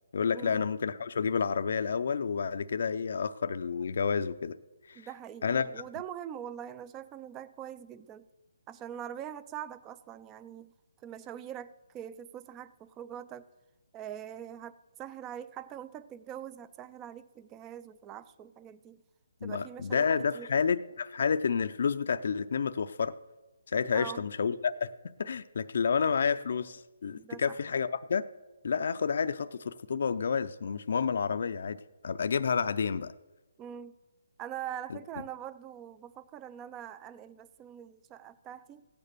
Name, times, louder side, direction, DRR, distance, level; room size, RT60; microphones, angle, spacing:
voice 1, 0.1-4.6 4.9-5.0 5.4-5.7 19.4-23.1 23.7-24.9 25.2-28.2 28.6-31.8 32.0-33.1, left 6 dB, 60° left, 0.5 m, -30 dB
voice 2, 4.9-8.3 8.7-10.7 11.0-13.5 13.9-19.0 19.4-20.5 23.9-24.2 25.8-25.9 27.2-27.6 33.6-33.9 34.4-38.9, right 10 dB, 15° right, 0.4 m, -43 dB
16.0 x 8.9 x 6.8 m
hypercardioid pair, 165°, 0 cm